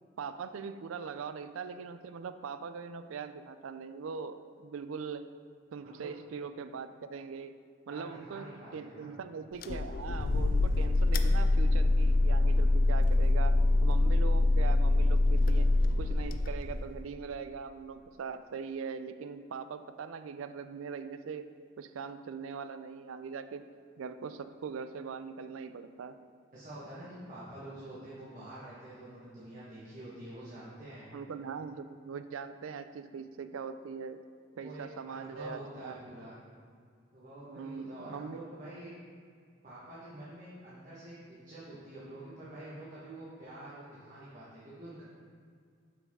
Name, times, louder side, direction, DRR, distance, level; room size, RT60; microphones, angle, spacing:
voice 1, 0.2-5.3 5.7-7.6 7.9-21.5 21.8-23.7 24.0-26.2 31.1-34.2 34.6-36.0 37.5-38.4, right 5 dB, 90° right, 11 dB, 0.4 m, -41 dB
voice 2, 5.8-6.1 7.9-9.1 26.5-31.1 34.6-36.4 37.1-38.9 39.6-45.0, right 1 dB, 40° right, -9 dB, 1.3 m, -47 dB
sound 1, 9.6-17.0, left 2 dB, 45° left, 0.4 m, -25 dB
7.9 x 5.9 x 3.6 m, 2.2 s
head